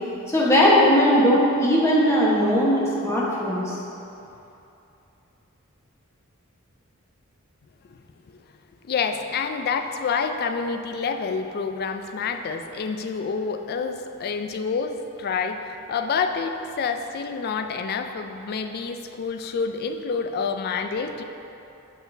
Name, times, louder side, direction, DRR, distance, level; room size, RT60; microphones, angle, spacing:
voice 1, 0.3-3.7, equal, 15° left, -6 dB, 1.1 m, -19 dB
voice 2, 8.8-21.2, left 5 dB, 45° left, 7 dB, 0.4 m, -28 dB
7.9 x 6.3 x 2.7 m, 2.9 s
head